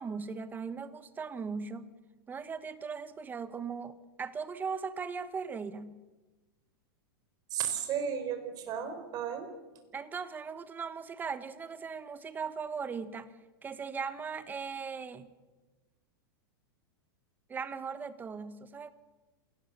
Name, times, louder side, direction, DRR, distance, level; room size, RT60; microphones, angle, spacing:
voice 1, 0.0-1.9 2.3-6.0 9.9-13.3 13.6-15.3 17.5-18.9, right 5 dB, 15° right, 13 dB, 1.2 m, -38 dB
voice 2, 7.5-9.5, right 8 dB, 30° right, 7 dB, 4.1 m, -34 dB
27.5 x 18.5 x 6.9 m, 1.2 s
supercardioid pair, 150°, 12 cm